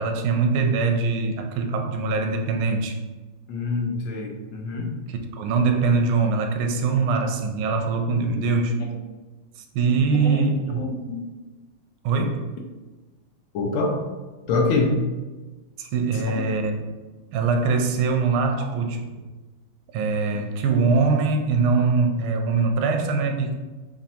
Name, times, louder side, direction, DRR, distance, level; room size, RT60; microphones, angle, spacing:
voice 1, 0.0-3.0 5.3-8.8 9.6-10.8 12.0-12.4 15.8-16.8 17.3-19.2 19.9-23.5, right 4 dB, 90° right, 5 dB, 1.4 m, -22 dB
voice 2, 3.5-4.9 10.2-11.2 13.5-14.0 14.5-15.0 16.4-16.5, left 3 dB, 80° left, 1 dB, 1.5 m, -25 dB
5.1 x 2.6 x 2.8 m, 1.2 s
omnidirectional pair, 2.2 m